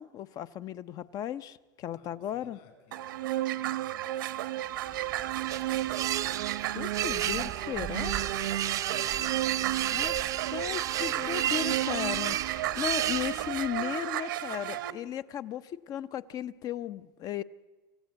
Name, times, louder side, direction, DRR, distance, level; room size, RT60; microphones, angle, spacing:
voice 1, 0.0-2.6 6.7-8.2 9.9-10.1 10.5-17.4, left 10 dB, 35° left, 0.7 m, -36 dB
voice 2, 1.9-6.6 8.5-8.9 9.7-11.7 15.9-16.0, left 6 dB, 55° left, 7.0 m, -60 dB
sound 1, 2.9-14.9, right 13 dB, 85° right, 1.1 m, -33 dB
sound 2, 4.9-13.8, right 12 dB, 30° right, 0.6 m, -33 dB
27.5 x 14.5 x 8.0 m
supercardioid pair, 135°, 11 cm